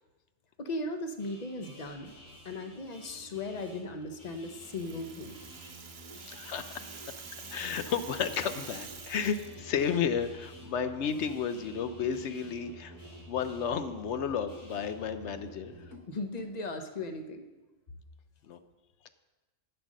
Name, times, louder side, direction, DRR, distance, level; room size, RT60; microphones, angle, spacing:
voice 1, 0.6-2.2 2.4-5.4 16.1-17.4, left 2 dB, 40° left, 7 dB, 0.8 m, -37 dB
sound 1, 1.2-14.9, left 1 dB, 90° left, 4.6 m, -54 dB
Musical instrument, 2.0-16.5, equal, 15° right, 1.1 m, -51 dB
Rattle (instrument), 4.4-9.6, right 6 dB, 55° right, 1.1 m, -47 dB
voice 2, 6.2-6.9 7.5-12.9 13.3-15.7 18.5-18.6, left 7 dB, 70° left, 10 dB, 0.9 m, -32 dB
9.4 x 7.7 x 6.3 m, 1.2 s
omnidirectional pair, 1.3 m